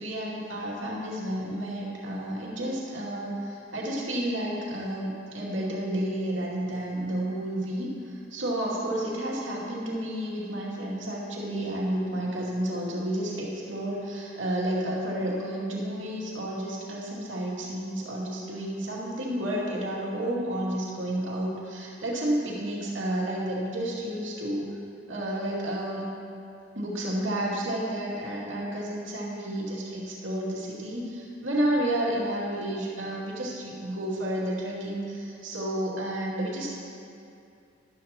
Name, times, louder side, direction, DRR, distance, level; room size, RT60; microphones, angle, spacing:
voice 1, 0.0-24.7 25.1-26.1 26.7-36.7, right 1 dB, 80° right, -5 dB, 2.4 m, -31 dB
13.5 x 12.0 x 2.9 m, 2.5 s
head